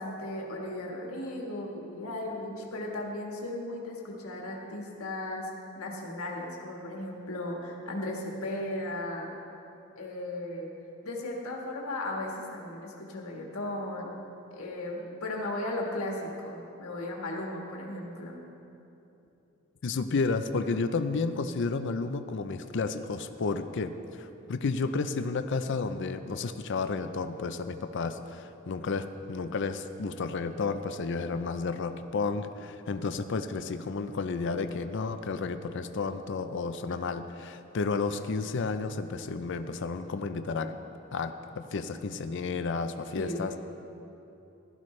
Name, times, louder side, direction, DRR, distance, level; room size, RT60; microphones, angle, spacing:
voice 1, 0.0-5.5 5.8-9.3 10.0-10.7 11.0-14.1 14.5-18.4 43.1-43.5, left 1 dB, 85° left, -1 dB, 1.6 m, -36 dB
voice 2, 19.8-40.8 41.1-43.6, left 4 dB, 55° left, 9 dB, 0.5 m, -32 dB
16.0 x 12.5 x 3.2 m, 2.9 s
head